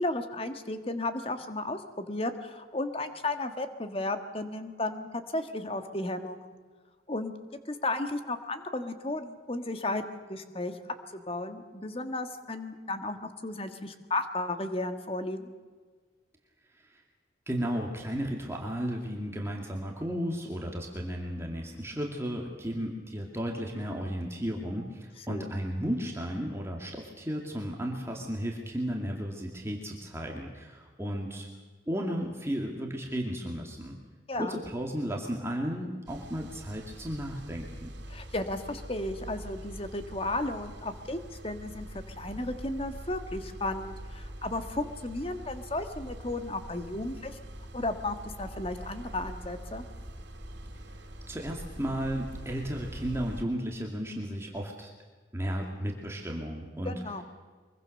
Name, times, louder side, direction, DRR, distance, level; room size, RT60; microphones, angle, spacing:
voice 1, 0.0-6.6 7.1-7.3 7.7-10.8 11.1-15.5 25.3-25.5 34.3-34.6 38.1-41.2 41.4-41.9 42.2-47.4 47.7-49.8 56.8-57.2, left 2 dB, 30° left, 8 dB, 1.6 m, -34 dB
voice 2, 17.5-31.5 31.9-34.0 34.3-37.9 50.7-54.9 55.3-56.9, equal, 15° right, 0 dB, 2.2 m, -34 dB
sound 1, 36.1-53.4, right 1 dB, 65° right, 3.2 m, -44 dB
24.0 x 23.0 x 6.6 m, 1.5 s
head